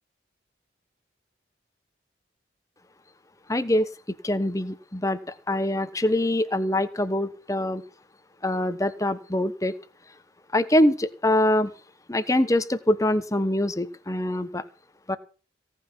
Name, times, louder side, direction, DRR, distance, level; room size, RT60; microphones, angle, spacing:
voice 1, 3.5-3.9 4.2-5.2 5.5-7.8 8.4-9.7 10.5-11.7 12.1-14.6 15.1-15.2, left 1 dB, 20° left, 12 dB, 1.0 m, -24 dB
17.5 x 5.9 x 9.8 m, 0.37 s
head